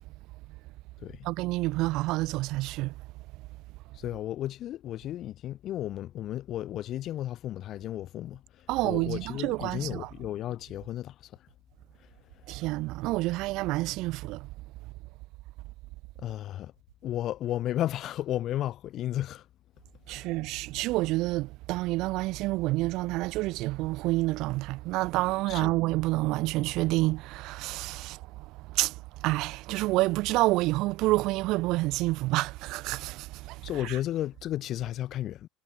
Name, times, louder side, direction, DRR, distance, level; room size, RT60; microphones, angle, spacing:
voice 1, 1.2-2.9 8.7-10.1 12.5-14.5 20.1-34.0, right 20 dB, 60° right, 0.5 m, -28 dB
voice 2, 3.9-11.3 16.2-16.7 17.0-19.5 20.1-20.3 25.5-25.8 33.6-35.5, left 13 dB, 50° left, 0.6 m, -33 dB
hypercardioid pair, 70°, 0 cm